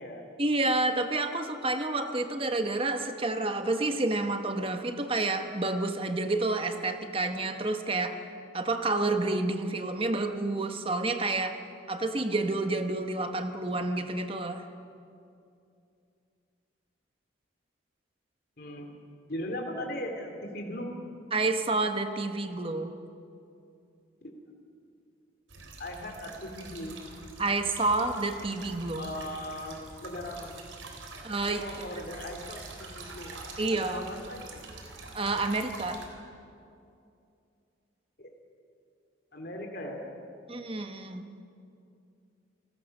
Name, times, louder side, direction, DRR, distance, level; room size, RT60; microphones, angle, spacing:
voice 1, 0.4-8.2 8.5-11.6 11.9-14.6 21.3-23.0 27.4-29.1 31.2-31.6 33.6-34.0 35.1-36.0 40.5-41.4, right 2 dB, 30° right, 7 dB, 1.1 m, -29 dB
voice 2, 18.6-18.9 19.3-20.9 24.2-24.3 25.8-27.0 29.0-30.5 31.1-31.2 31.6-33.3 33.7-34.6 38.2-38.4 39.3-40.1, left 1 dB, 50° left, 3 dB, 2.8 m, -38 dB
sound 1, 25.5-36.1, right 3 dB, 80° right, 3.7 m, -45 dB
28.0 x 19.0 x 6.6 m, 2.5 s
head